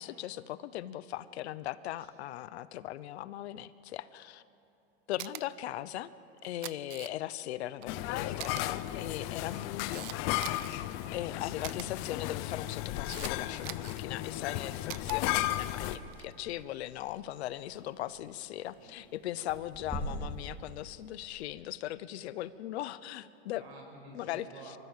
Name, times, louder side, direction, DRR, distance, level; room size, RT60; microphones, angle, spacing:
voice 1, 0.0-4.4 5.1-6.1 6.4-10.6 11.1-23.6 24.1-24.5, left 13 dB, 80° left, 16 dB, 0.9 m, -39 dB
Camera, 5.2-5.4 6.4-7.4 7.8-7.9 8.4-8.6 9.3-10.8 11.6-11.9 12.6-13.3 13.6-14.0 14.9-15.2 16.0-16.3, right 18 dB, 30° right, 0.4 m, -43 dB
sound 1, 7.9-16.0, left 15 dB, 45° left, 0.8 m, -34 dB
sound 2, 11.1-21.5, equal, 5° left, 3.6 m, -47 dB
voice 2, 23.6-24.8, right 3 dB, 75° right, 2 dB, 5.9 m, -51 dB
25.0 x 14.0 x 7.4 m, 2.7 s
supercardioid pair, 145°, 32 cm